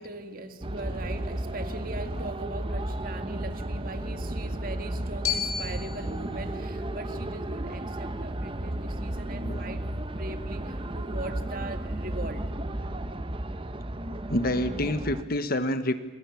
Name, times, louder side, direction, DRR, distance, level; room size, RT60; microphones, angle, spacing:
voice 1, 0.0-12.5, right 2 dB, 45° right, 8 dB, 1.9 m, -40 dB
sound 1, 0.6-15.2, right 1 dB, 25° right, 0.9 m, -33 dB
Glockenspiel, 5.2-9.4, left 8 dB, 90° left, 4.4 m, -37 dB
voice 2, 14.3-15.9, left 1 dB, 45° left, 10 dB, 1.2 m, -27 dB
28.5 x 22.5 x 7.1 m, 1.3 s
head